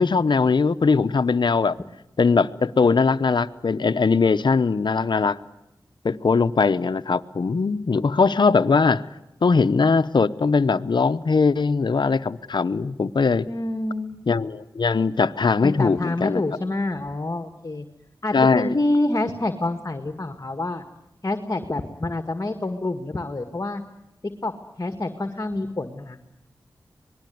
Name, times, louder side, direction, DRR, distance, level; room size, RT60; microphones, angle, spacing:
voice 1, 0.0-1.8 2.2-5.4 6.0-9.0 9.4-13.5 14.3-16.4 18.3-18.7, left 4 dB, 65° left, 12 dB, 0.9 m, -20 dB
voice 2, 13.5-14.2 15.6-17.9 18.2-20.8 21.2-23.8 24.4-24.5 24.8-26.2, left 2 dB, 40° left, 8 dB, 1.9 m, -27 dB
25.5 x 20.0 x 9.4 m, 0.89 s
cardioid pair, 50°, 8 cm